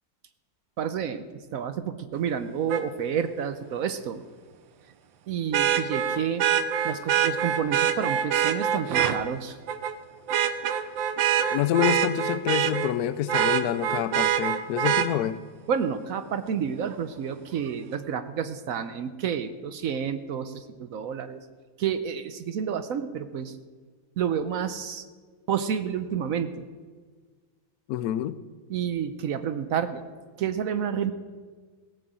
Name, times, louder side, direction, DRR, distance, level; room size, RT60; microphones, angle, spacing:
voice 1, 0.8-1.3 1.5-4.2 5.3-6.5 6.8-9.6 15.7-21.4 21.8-23.6 24.2-25.0 25.5-26.7 28.7-30.0 30.4-31.1, right 8 dB, 65° right, 10 dB, 0.9 m, -29 dB
Vehicle horn car horn honking, 2.7-2.8 5.5-9.2 9.7-9.9 10.3-12.9 13.3-15.1 16.9-17.0, right 9 dB, 80° right, 1.5 m, -24 dB
voice 2, 11.5-15.4 27.9-28.4, left 11 dB, 70° left, 14 dB, 0.9 m, -27 dB
17.0 x 6.9 x 7.6 m, 1.5 s
omnidirectional pair, 2.1 m